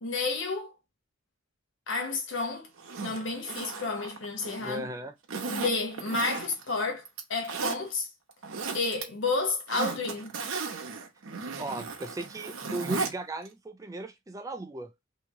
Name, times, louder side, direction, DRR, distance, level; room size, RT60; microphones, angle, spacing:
voice 1, 0.0-0.7 1.9-2.7 3.0-4.9 5.5-7.0 7.3-8.1 8.7-10.3, left 3 dB, 65° left, 1.0 m, -31 dB
Zipper (clothing), 2.8-4.7 5.3-6.7 7.1-7.8 8.3-9.0 9.4-13.1 13.5-13.6, right 4 dB, 80° right, 0.8 m, -35 dB
voice 2, 4.6-5.1 11.6-14.9, right 1 dB, 15° right, 0.3 m, -37 dB
3.0 x 2.7 x 3.4 m
head